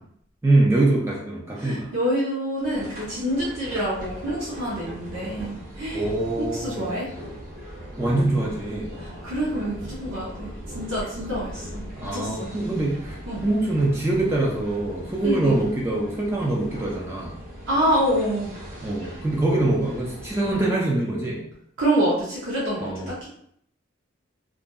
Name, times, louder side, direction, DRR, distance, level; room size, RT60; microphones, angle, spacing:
voice 1, 0.4-1.9 5.9-7.0 8.0-8.9 12.0-17.3 18.8-21.4 22.8-23.1, right 2 dB, 15° right, -4 dB, 0.4 m, -24 dB
voice 2, 1.6-6.1 6.4-7.1 9.0-11.8 12.1-12.5 13.3-13.4 15.2-15.6 17.7-18.5 21.8-23.3, right 1 dB, 85° right, -7 dB, 0.7 m, -26 dB
sound 1, 2.6-20.7, equal, 50° right, 1.1 m, -39 dB
2.7 x 2.4 x 2.2 m, 0.69 s
head